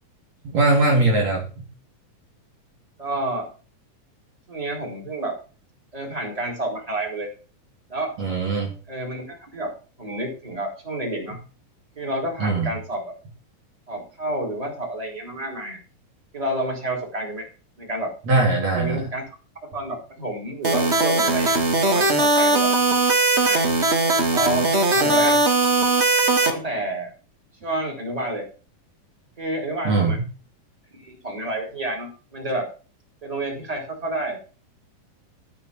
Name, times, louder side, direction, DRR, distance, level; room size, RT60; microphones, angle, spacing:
voice 1, 0.4-1.7 8.2-8.8 12.4-12.7 18.3-19.1 29.8-30.2, right 2 dB, 50° right, -1 dB, 3.8 m, -21 dB
voice 2, 3.0-3.5 4.5-5.3 5.9-7.3 7.9-8.2 8.9-9.7 10.0-11.4 12.0-13.1 13.9-15.8 16.3-17.5 17.8-18.1 18.8-19.2 19.7-21.5 21.8-22.7 23.4-23.6 24.3-25.4 26.4-27.1 27.6-28.5 29.4-30.2 31.0-32.7 33.2-34.4, right 1 dB, 10° right, -1 dB, 4.4 m, -29 dB
sound 1, 20.6-26.5, right 2 dB, 30° right, 1.3 m, -19 dB
14.5 x 5.8 x 7.3 m, 0.36 s
omnidirectional pair, 4.0 m